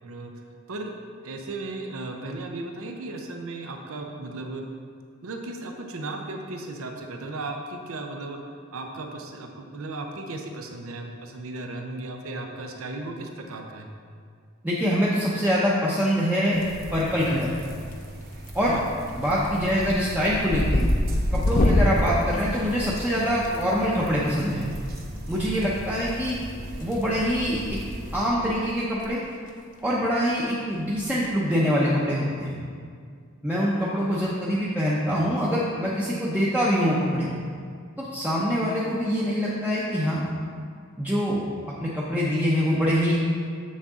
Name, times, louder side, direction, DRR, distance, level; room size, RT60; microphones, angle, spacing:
voice 1, 0.0-0.3 0.7-0.9 1.2-4.7 5.2-8.4 8.7-13.9 18.7-18.8, right 2 dB, 80° right, 3 dB, 0.7 m, -35 dB
voice 2, 14.6-16.6 16.9-17.5 18.5-18.7 19.2-20.8 21.3-24.7 25.3-26.4 26.8-27.8 28.1-29.2 29.8-32.5 33.4-37.3 38.0-40.2 41.0-41.4 41.8-43.2, equal, 5° right, -7 dB, 0.6 m, -24 dB
sound 1, 16.5-28.3, right 1 dB, 45° right, 0.9 m, -39 dB
sound 2, 16.7-17.3 17.6-18.1 18.5-18.8 19.1-23.5 24.9-25.0 26.2-27.0 27.3-27.5 28.1-28.2 28.4-28.5 28.9-29.1 29.4-29.5 31.0-31.3, left 1 dB, 35° left, 0.6 m, -25 dB
7.0 x 6.4 x 3.6 m, 2.2 s
head